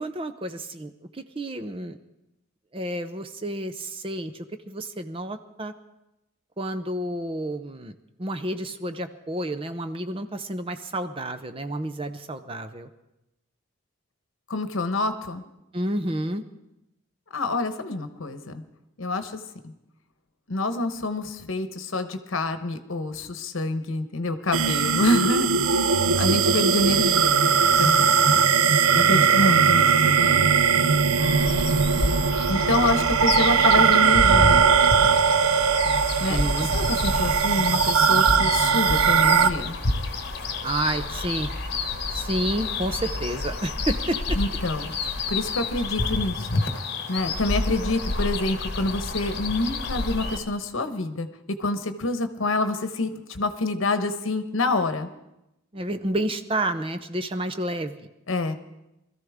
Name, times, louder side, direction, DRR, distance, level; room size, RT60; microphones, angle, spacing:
voice 1, 0.0-2.0 2.7-5.7 6.6-12.9 15.7-16.4 26.0-26.4 29.2-29.5 31.1-31.6 31.9-32.1 36.3-36.7 40.6-41.5 42.1-44.4 55.7-58.1, right 1 dB, 25° right, 9 dB, 0.6 m, -30 dB
voice 2, 14.5-15.4 17.3-18.6 19.0-19.7 20.5-27.5 27.8-28.2 28.9-30.4 32.5-34.6 36.2-39.8 44.3-44.9 45.3-46.6 47.1-55.1 58.3-58.6, left 2 dB, 75° left, 9 dB, 1.0 m, -27 dB
sound 1, 24.5-39.5, right 6 dB, 85° right, 0.5 m, -20 dB
sound 2, 31.2-50.4, left 3 dB, 50° left, 1.2 m, -29 dB
21.0 x 14.0 x 3.6 m, 0.90 s
head